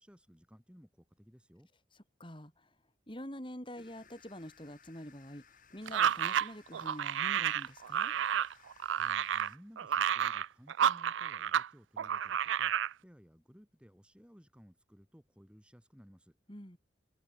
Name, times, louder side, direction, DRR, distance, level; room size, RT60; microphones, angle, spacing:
voice 1, 0.0-1.7 8.9-12.7 13.0-16.4, equal, 5° right, 4.3 m, -58 dB
voice 2, 2.2-2.7 3.1-5.4 5.7-8.1 16.5-16.8, equal, 25° left, 4.7 m, -46 dB
sound 1, 3.7-9.6, left 6 dB, 45° left, 7.0 m, -62 dB
sound 2, 5.9-11.7 12.0-12.9, right 9 dB, 80° right, 0.4 m, -31 dB
head